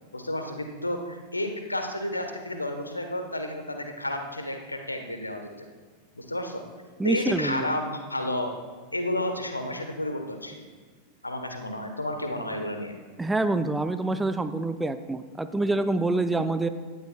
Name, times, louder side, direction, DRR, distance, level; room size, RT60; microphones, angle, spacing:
voice 1, 0.1-5.7 6.1-6.7 7.0-8.5 8.9-10.6 11.2-12.9, left 1 dB, 85° left, 5 dB, 1.3 m, -31 dB
voice 2, 7.0-7.7 13.2-16.7, right 2 dB, 10° right, 10 dB, 0.5 m, -26 dB
17.5 x 12.0 x 2.4 m, 1.5 s
figure-of-eight pair, 90°, 0 cm